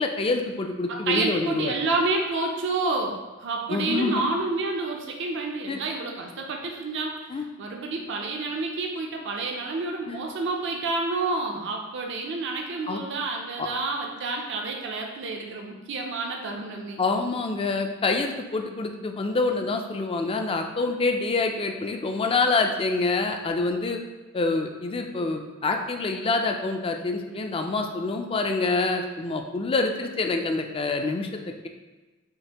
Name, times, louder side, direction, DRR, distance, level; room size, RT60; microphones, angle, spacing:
voice 1, 0.0-1.7 3.7-4.2 5.7-5.8 7.3-7.4 10.1-10.2 12.9-13.0 13.6-13.7 17.0-24.0 24.3-31.7, left 3 dB, 25° left, 4 dB, 0.4 m, -26 dB
voice 2, 0.9-17.0, right 3 dB, 60° right, 1 dB, 0.5 m, -29 dB
6.4 x 2.6 x 2.9 m, 1.2 s
head